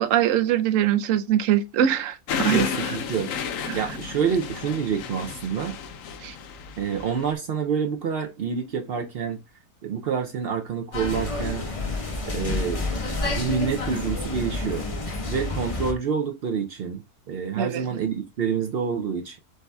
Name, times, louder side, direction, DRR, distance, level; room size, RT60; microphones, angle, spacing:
voice 1, 0.0-2.7 3.7-3.8 6.2-6.3 17.6-17.8, right 10 dB, 65° right, 0.9 m, -22 dB
sound 1, 2.3-7.3, left 7 dB, 65° left, 1.0 m, -32 dB
voice 2, 2.5-3.3 3.7-5.8 6.8-9.4 9.8-11.6 12.3-12.8 13.3-14.9 15.3-19.4, right 6 dB, 80° right, 0.5 m, -27 dB
sound 2, 10.9-15.9, left 2 dB, 35° left, 0.6 m, -29 dB
7.9 x 2.7 x 2.2 m
omnidirectional pair, 1.7 m